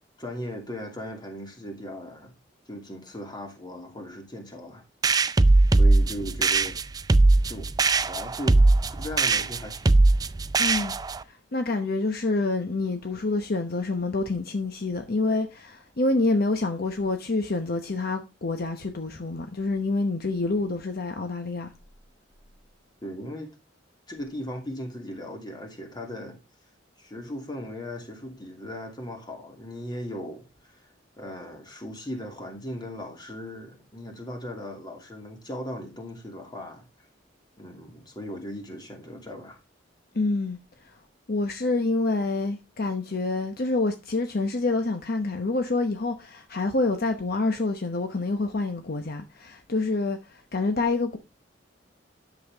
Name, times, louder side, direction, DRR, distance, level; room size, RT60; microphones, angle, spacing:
voice 1, 0.2-2.3 2.7-4.8 5.8-6.8 7.5-7.7 8.1-8.6 8.9-10.0 23.0-23.5 24.1-26.4 27.0-30.9 31.2-36.9 37.6-39.6, equal, 25° left, 2.5 m, -38 dB
sound 1, 5.0-11.2, right 2 dB, 20° right, 0.4 m, -20 dB
voice 2, 10.6-10.9 11.2-21.7 40.1-40.9 41.3-51.2, left 3 dB, 55° left, 0.9 m, -27 dB
11.0 x 7.1 x 3.5 m
head